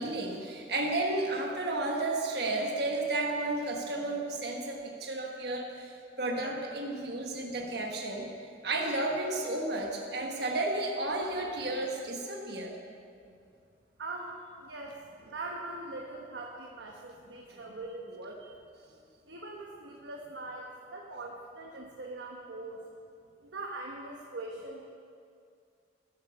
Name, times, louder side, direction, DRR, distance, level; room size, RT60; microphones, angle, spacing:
voice 1, 0.0-12.7 17.5-17.6, right 2 dB, 60° right, 0 dB, 1.4 m, -32 dB
voice 2, 14.0-14.3 14.6-18.5 19.3-22.8 23.4-24.8, right 2 dB, 80° right, -1 dB, 1.1 m, -42 dB
11.5 x 8.7 x 6.7 m, 2.3 s
head